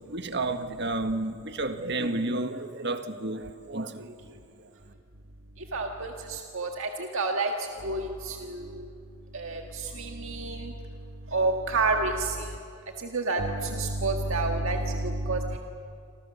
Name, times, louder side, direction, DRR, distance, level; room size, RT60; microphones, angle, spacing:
voice 1, 0.1-4.7, right 2 dB, 50° right, 1.5 m, -31 dB
voice 2, 5.7-7.5 7.8-8.8 9.3-10.7 11.3-12.5 13.1-15.6, right 3 dB, 65° right, 1.7 m, -29 dB
28.5 x 26.5 x 7.2 m
head